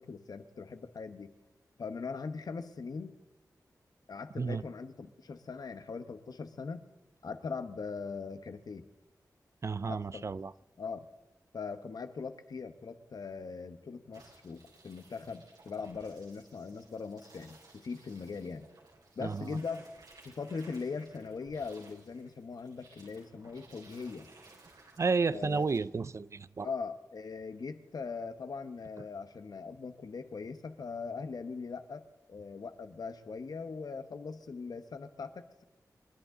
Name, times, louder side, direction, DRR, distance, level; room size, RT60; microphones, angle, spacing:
voice 1, 0.0-1.3 1.8-3.2 4.1-6.9 7.2-8.9 9.8-10.3 10.8-11.1 11.5-18.7 19.2-19.9 20.2-24.3 25.3-25.6 26.6-35.6, left 4 dB, 70° left, 1.1 m, -41 dB
voice 2, 9.6-10.5 19.2-19.5 25.0-26.7, right 4 dB, 45° right, 0.4 m, -31 dB
sound 1, 14.1-25.8, right 3 dB, 85° right, 4.3 m, -59 dB
28.5 x 11.0 x 3.9 m
wide cardioid pair, 100°, 7 cm